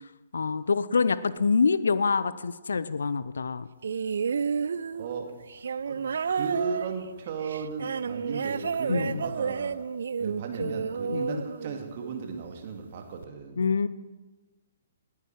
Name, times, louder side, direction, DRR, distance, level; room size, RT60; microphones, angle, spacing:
voice 1, 0.3-3.7 8.9-9.2 10.6-10.8 11.1-11.4 13.6-13.9, left 5 dB, 70° left, 16 dB, 0.5 m, -26 dB
sound 1, 3.8-12.2 13.2-13.3, right 6 dB, 60° right, 0.4 m, -31 dB
voice 2, 5.0-5.3 5.9-6.0 6.3-9.8 10.2-13.6, right 5 dB, 45° right, 3 dB, 2.2 m, -35 dB
19.0 x 9.6 x 4.7 m, 1.2 s
figure-of-eight pair, 125°, 0 cm